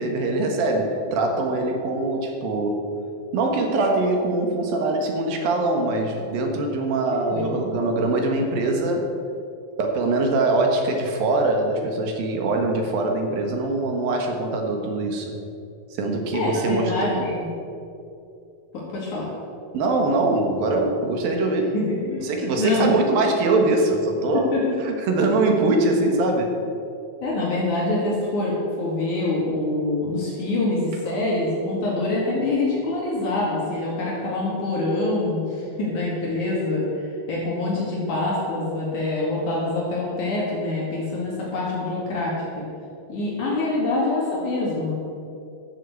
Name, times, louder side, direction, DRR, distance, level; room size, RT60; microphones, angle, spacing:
voice 1, 0.0-2.9 3.3-9.1 9.8-15.3 16.0-17.2 19.7-21.7 22.2-24.5 24.8-26.6, right 2 dB, 75° right, 2 dB, 3.2 m, -23 dB
voice 2, 7.1-7.5 16.3-17.4 18.9-19.3 21.7-22.9 24.3-24.6 27.2-42.7 43.1-44.9, left 2 dB, 55° left, -5 dB, 3.5 m, -25 dB
12.5 x 7.7 x 7.9 m, 2.6 s
omnidirectional pair, 4.3 m